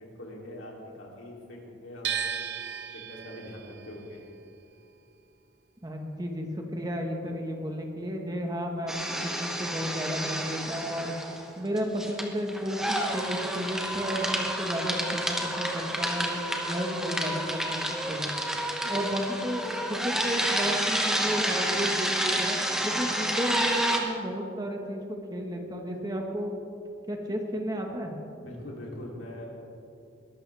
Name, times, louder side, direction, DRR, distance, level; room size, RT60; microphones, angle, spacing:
voice 1, 0.0-2.5 2.9-4.2 28.4-29.5, left 1 dB, 85° left, -2 dB, 3.2 m, -42 dB
sound 1, 2.0-8.1 8.3-9.6, right 8 dB, 60° right, 0.9 m, -38 dB
voice 2, 5.8-11.1 11.6-18.3 18.8-22.6 22.8-26.5 27.1-28.2, equal, 20° right, 2 dB, 1.4 m, -33 dB
sound 2, 8.9-11.5 11.8-24.0, right 1 dB, 5° right, 1.1 m, -30 dB
21.5 x 13.0 x 3.5 m, 2.6 s
head